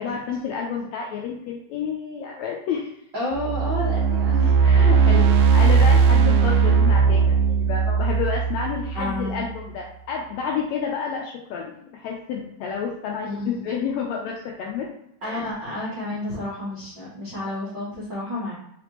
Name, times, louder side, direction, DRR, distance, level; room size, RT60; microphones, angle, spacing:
voice 1, 0.0-2.9 4.6-14.9 15.2-15.4, left 6 dB, 80° left, -1 dB, 1.6 m, -30 dB
voice 2, 3.1-4.6 5.1-5.3 8.9-9.4 13.2-13.6 15.2-18.6, left 1 dB, 70° right, -8 dB, 1.1 m, -30 dB
sound 1, 3.3-9.5, right 5 dB, 90° right, 1.5 m, -18 dB
4.8 x 3.3 x 3.0 m, 0.78 s
omnidirectional pair, 3.7 m